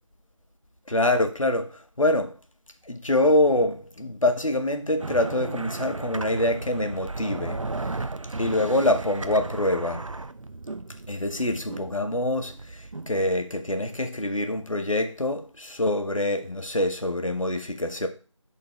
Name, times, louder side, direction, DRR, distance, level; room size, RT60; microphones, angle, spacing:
voice 1, 0.9-2.3 2.8-7.7 8.4-10.1 11.1-18.1, left 1 dB, 90° left, 1.2 m, -25 dB
sound 1, 5.0-13.4, right 3 dB, 80° right, 0.6 m, -35 dB
9.8 x 3.8 x 3.3 m
figure-of-eight pair, 175°, 16 cm